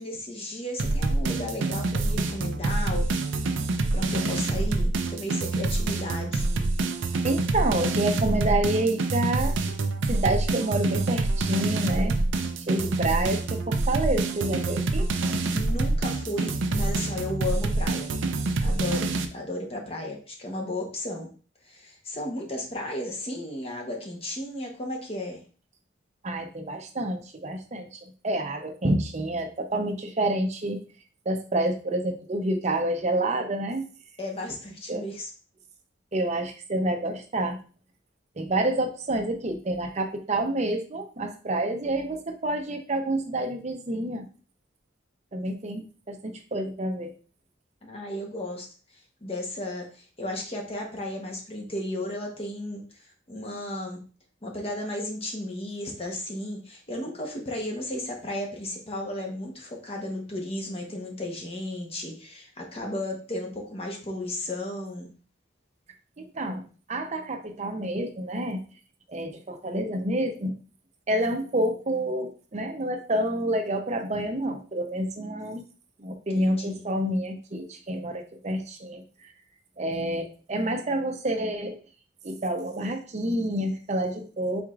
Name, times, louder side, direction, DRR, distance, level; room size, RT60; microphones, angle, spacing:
voice 1, 0.0-3.1 3.5-3.7 3.9-6.5 15.5-18.1 18.6-21.3 21.6-25.4 34.2-35.3 47.8-48.7 49.2-52.8 53.3-54.0 54.4-65.1 76.3-76.9, left 1 dB, 30° left, 1 dB, 0.9 m, -34 dB
duskwalkin loop, 0.8-19.3, right 2 dB, 75° right, 0.5 m, -26 dB
voice 2, 7.2-9.6 10.1-12.2 12.7-15.1 26.2-30.8 31.3-33.8 34.9-35.0 36.1-37.6 38.4-44.2 45.3-47.1 66.2-66.6 66.9-68.6 69.1-70.5 71.1-75.6 76.0-79.0 79.8-81.8 82.2-84.6, right 1 dB, 35° right, 5 dB, 0.6 m, -28 dB
4.7 x 4.3 x 2.4 m, 0.38 s
head